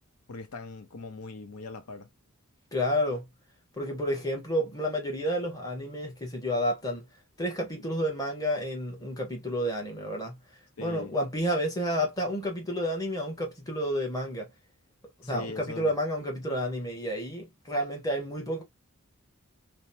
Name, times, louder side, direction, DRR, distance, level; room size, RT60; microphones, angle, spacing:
voice 1, 0.3-2.1 10.8-11.2 15.2-15.9, left 3 dB, 85° left, 0.6 m, -41 dB
voice 2, 2.7-3.3 3.8-7.0 7.4-10.4 10.8-14.5 15.2-18.6, equal, 15° left, 1.0 m, -30 dB
2.9 x 2.0 x 2.7 m
head